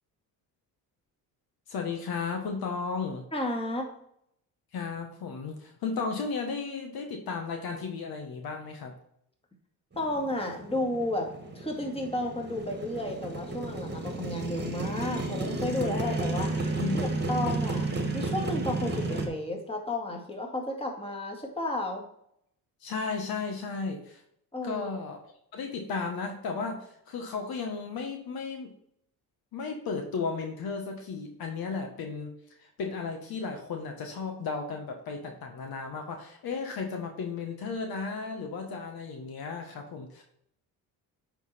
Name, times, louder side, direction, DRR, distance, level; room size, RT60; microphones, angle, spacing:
voice 1, 1.7-3.2 4.7-9.0 16.8-17.2 22.8-24.2 24.6-25.2 25.5-28.7 29.5-32.3 32.6-40.2, left 4 dB, 60° left, 4 dB, 1.3 m, -34 dB
voice 2, 3.3-3.9 10.0-11.3 11.5-16.5 16.9-22.0 24.5-24.9, left 1 dB, 15° left, 1 dB, 2.1 m, -32 dB
Motorcycle, 9.9-19.3, right 2 dB, 25° right, 1.7 m, -32 dB
9.0 x 4.0 x 4.2 m, 0.72 s
supercardioid pair, 75°, 41 cm